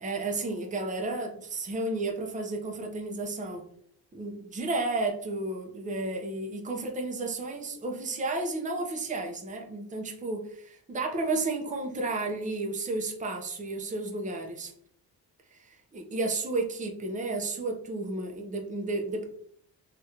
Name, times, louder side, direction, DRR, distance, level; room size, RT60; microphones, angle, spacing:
voice 1, 0.0-3.6 4.1-14.7 15.6-19.3, right 2 dB, 20° right, 2 dB, 0.6 m, -32 dB
3.1 x 2.4 x 2.7 m, 0.62 s
cardioid pair, 85°, 42 cm